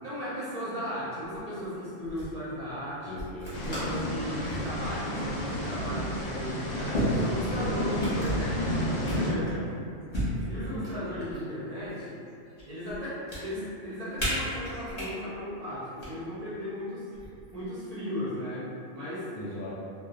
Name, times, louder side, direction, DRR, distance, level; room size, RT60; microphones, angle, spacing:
voice 1, 0.0-3.1 3.6-9.6 10.5-12.2 12.7-17.1 17.5-19.3, equal, 50° right, -11 dB, 0.4 m, -36 dB
Bouger truc - denoisé, 1.6-1.7 2.0-2.3 3.2-4.0 4.4-4.8 5.8-5.9 6.9-7.7 8.0-8.5 9.0-9.6 10.1-11.5 11.8-12.6 12.9-13.4 14.2-15.1 15.8-16.1 17.1-17.6, equal, 35° left, 0.8 m, -33 dB
voice 2, 3.0-3.7 7.5-8.0 9.1-9.6 10.2-10.9 19.3-19.7, left 1 dB, 60° left, -6 dB, 0.6 m, -40 dB
sound 1, 3.5-9.3, equal, 85° left, 1.0 m, -31 dB
2.2 x 2.1 x 2.8 m, 2.5 s
omnidirectional pair, 1.3 m